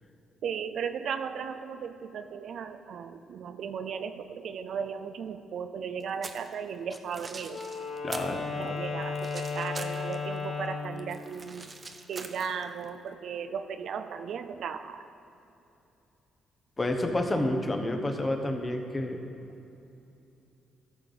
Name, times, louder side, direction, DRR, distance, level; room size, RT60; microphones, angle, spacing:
voice 1, 0.4-7.6 8.6-11.7 12.1-15.1 17.3-17.4, right 7 dB, 65° right, 9 dB, 0.5 m, -36 dB
sound 1, 6.0-6.5 7.0-8.4 8.6-10.4 10.7-12.9, right 3 dB, 30° right, 0.7 m, -43 dB
Wind instrument woodwind instrument, 7.4-11.0, left 4 dB, 60° left, 2.5 m, -34 dB
voice 2, 8.0-8.7 16.8-19.3, left 1 dB, 25° left, 4 dB, 1.1 m, -30 dB
14.0 x 6.7 x 4.0 m, 2.9 s
cardioid pair, 90°, 0 cm